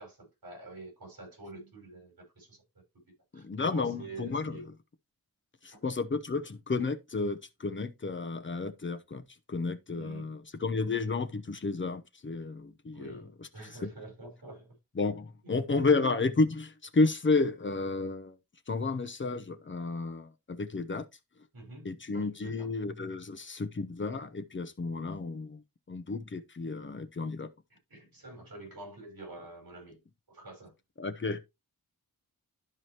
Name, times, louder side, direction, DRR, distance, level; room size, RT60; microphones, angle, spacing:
voice 1, 0.0-2.6 3.3-4.7 5.7-5.8 9.9-10.4 12.9-14.7 15.9-16.0 21.5-22.7 27.9-30.0 30.3-30.7, right 2 dB, 65° right, 5.1 m, -47 dB
voice 2, 3.3-4.6 5.6-9.2 9.5-13.5 13.8-13.9 15.0-18.3 18.7-21.0 21.8-25.6 25.9-27.5 31.0-31.4, left 3 dB, 30° left, 0.8 m, -31 dB
12.5 x 4.8 x 2.9 m
wide cardioid pair, 165°, 38 cm